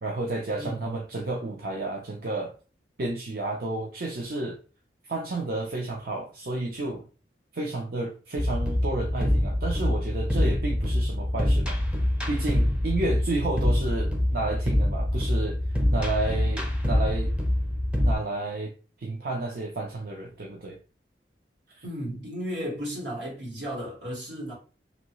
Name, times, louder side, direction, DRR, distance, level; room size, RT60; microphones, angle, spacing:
voice 1, 0.0-2.5 3.0-4.6 5.0-7.0 7.5-11.8 12.3-15.6 15.9-17.3 18.0-18.7 19.0-20.8 21.7-21.8, right 2 dB, 55° right, 0.5 m, -31 dB
voice 2, 0.6-0.9 21.8-24.5, equal, 80° right, 1.7 m, -34 dB
sound 1, 8.4-18.1, left 1 dB, 5° right, 0.5 m, -25 dB
3.0 x 2.8 x 2.9 m
head